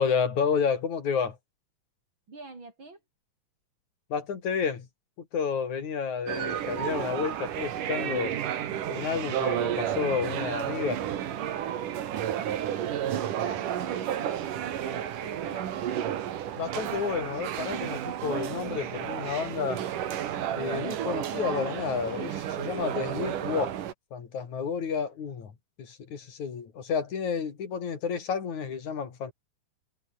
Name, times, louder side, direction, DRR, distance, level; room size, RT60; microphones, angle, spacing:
voice 1, 0.0-1.4 4.1-4.9 5.2-8.3 8.9-11.0 16.6-19.9 20.6-23.8 24.1-25.5 25.8-29.3, left 6 dB, 65° left, 4.3 m, -30 dB
voice 2, 2.3-3.0 13.1-14.4 14.8-16.0, right 3 dB, 35° right, 5.2 m, -45 dB
sound 1, 6.3-23.9, right 10 dB, 90° right, 3.4 m, -32 dB
omnidirectional pair, 3.6 m